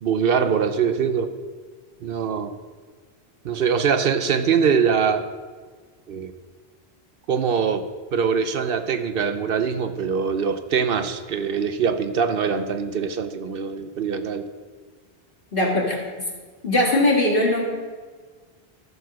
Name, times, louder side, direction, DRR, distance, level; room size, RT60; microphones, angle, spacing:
voice 1, 0.0-1.3 2.0-2.6 3.4-5.3 6.1-6.3 7.3-7.9 8.1-14.5, right 6 dB, 65° right, 9 dB, 0.8 m, -23 dB
voice 2, 15.5-16.0 16.6-17.6, left 1 dB, 55° left, -2 dB, 2.1 m, -20 dB
14.0 x 4.7 x 6.2 m, 1.5 s
omnidirectional pair, 1.1 m